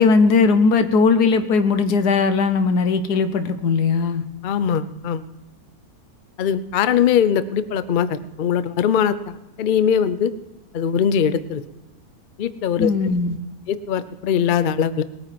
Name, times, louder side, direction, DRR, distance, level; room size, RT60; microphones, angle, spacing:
voice 1, 0.0-4.2 12.8-13.4, left 4 dB, 90° left, 10 dB, 1.5 m, -18 dB
voice 2, 4.4-5.2 6.4-10.3 10.7-11.6 12.4-12.9 13.7-15.0, left 8 dB, 60° left, 14 dB, 0.5 m, -21 dB
20.0 x 9.2 x 5.9 m, 1.0 s
omnidirectional pair, 1.6 m